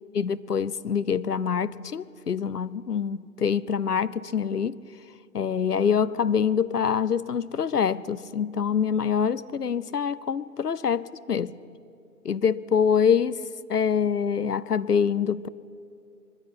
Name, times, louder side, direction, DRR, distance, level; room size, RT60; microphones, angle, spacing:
voice 1, 0.2-4.8 5.3-11.5 12.2-13.4 13.7-15.5, left 7 dB, 75° left, 17 dB, 0.8 m, -25 dB
20.5 x 15.0 x 9.8 m, 2.6 s
figure-of-eight pair, 130°, 47 cm